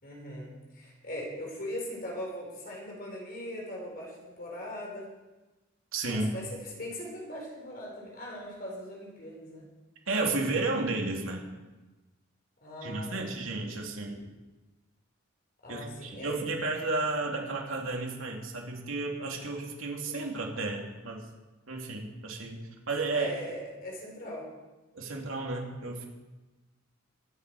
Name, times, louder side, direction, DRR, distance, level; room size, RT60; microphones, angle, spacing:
voice 1, 0.0-5.1 6.1-9.7 12.6-13.3 15.6-16.3 20.1-20.3 23.1-24.5, left 1 dB, 45° left, -2 dB, 4.7 m, -40 dB
voice 2, 5.9-6.3 10.1-11.4 12.8-14.3 15.7-21.2 21.7-23.3 24.9-26.1, right 3 dB, 90° right, 0 dB, 2.7 m, -32 dB
22.0 x 9.6 x 4.9 m, 1.1 s
head